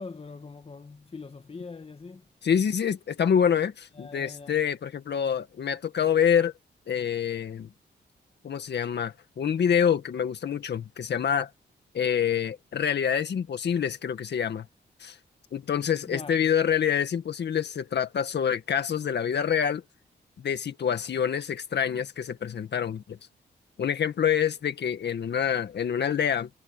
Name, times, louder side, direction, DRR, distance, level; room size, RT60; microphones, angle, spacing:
voice 1, 0.0-2.2 3.9-4.6 16.0-16.3, left 4 dB, 30° left, 1.8 m, -42 dB
voice 2, 2.4-6.5 6.9-7.7 8.4-11.5 11.9-14.7 15.0-15.2 15.5-19.8 20.4-23.2 23.8-26.5, left 8 dB, 70° left, 1.9 m, -26 dB
cardioid pair, 100°, 18 cm